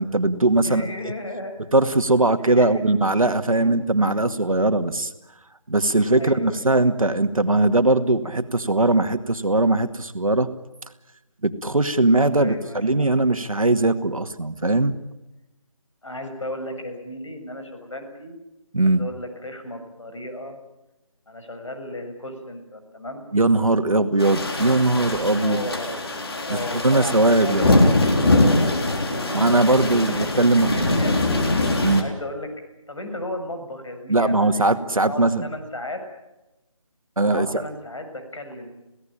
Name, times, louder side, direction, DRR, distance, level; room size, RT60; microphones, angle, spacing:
voice 1, 0.0-1.1 1.7-5.1 5.7-10.5 11.4-15.0 18.7-19.0 23.3-25.6 26.5-27.7 29.3-31.2 31.8-32.1 34.1-35.5 37.2-37.6, right 2 dB, 80° right, 9 dB, 2.1 m, -20 dB
voice 2, 0.6-1.5 2.4-2.8 3.5-3.8 4.1-4.2 6.2-6.7 12.3-13.1 16.0-18.4 18.8-20.6 21.3-23.2 25.4-26.0 26.4-27.5 27.8-31.2 31.9-32.5 32.9-36.0 37.2-38.8, left 1 dB, 60° left, 6 dB, 6.8 m, -35 dB
sound 1, 24.2-32.0, left 2 dB, 45° left, 3.7 m, -22 dB
27.5 x 17.5 x 8.9 m, 0.98 s
figure-of-eight pair, 160°, 17 cm